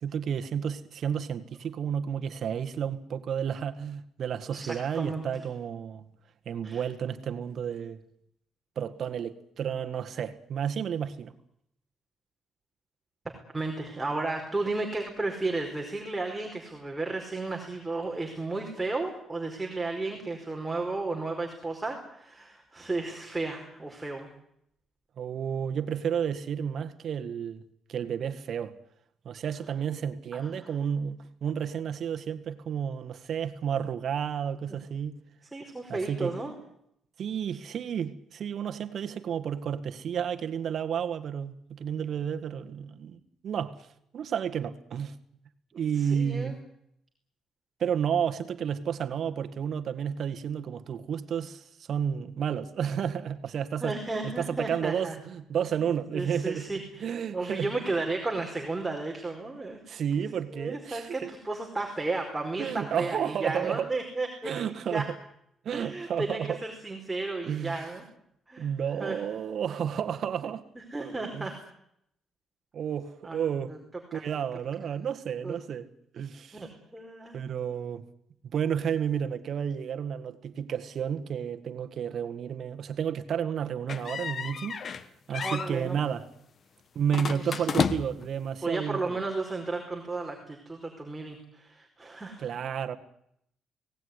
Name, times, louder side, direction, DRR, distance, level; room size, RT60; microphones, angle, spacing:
voice 1, 0.0-6.1 6.5-8.0 8.8-11.3 25.2-27.6 27.9-28.8 29.3-35.2 35.9-36.4 37.2-43.8 44.1-45.2 45.7-46.6 47.8-54.0 54.2-56.7 57.0-57.7 59.9-61.3 62.6-63.9 64.4-65.1 65.7-66.6 67.4-67.8 68.6-70.7 71.0-71.5 72.7-73.7 74.1-75.9 76.1-76.7 77.3-78.1 78.4-84.8 85.3-86.3 87.0-89.2 92.4-92.9, right 8 dB, 60° right, 1.9 m, -31 dB
voice 2, 4.5-5.2 6.6-6.8 13.5-24.3 30.3-30.7 35.5-36.5 45.9-46.6 53.8-55.1 55.6-56.8 57.3-59.8 60.5-65.0 65.7-68.0 68.5-68.7 69.0-69.2 70.8-71.5 73.2-73.8 74.1-74.2 75.4-75.6 76.5-77.4 85.4-86.0 87.4-87.6 88.6-92.5, right 3 dB, 15° right, 4.8 m, -33 dB
sound 1, 83.9-85.1 85.3-85.7 87.1-88.3, left 6 dB, 50° left, 1.3 m, -31 dB
24.0 x 18.5 x 9.9 m
cardioid pair, 90°, 0 cm